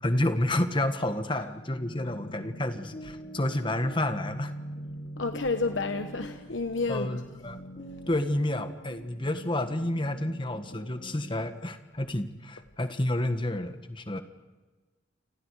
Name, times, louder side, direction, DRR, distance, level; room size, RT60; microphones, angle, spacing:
voice 1, 0.0-4.5 6.9-7.6 8.1-14.2, left 1 dB, 25° left, 8 dB, 1.5 m, -30 dB
sound 1, 1.5-11.5, equal, 40° left, 2.1 m, -43 dB
voice 2, 5.2-7.2, left 3 dB, 75° left, 7 dB, 1.2 m, -30 dB
29.5 x 26.0 x 4.9 m, 1.3 s
head